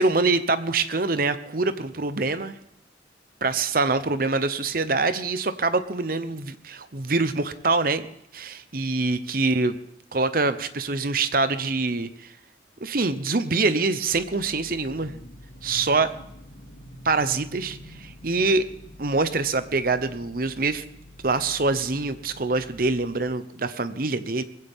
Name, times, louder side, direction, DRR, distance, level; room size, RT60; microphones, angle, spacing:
voice 1, 0.0-2.5 3.4-9.7 10.1-12.3 12.8-15.1 15.6-16.1 17.0-18.7 19.0-20.8 21.2-24.4, right 3 dB, 50° right, 11 dB, 0.9 m, -25 dB
sound 1, 14.1-23.2, left 1 dB, 75° left, 6.6 m, -46 dB
20.5 x 16.0 x 3.7 m, 0.74 s
head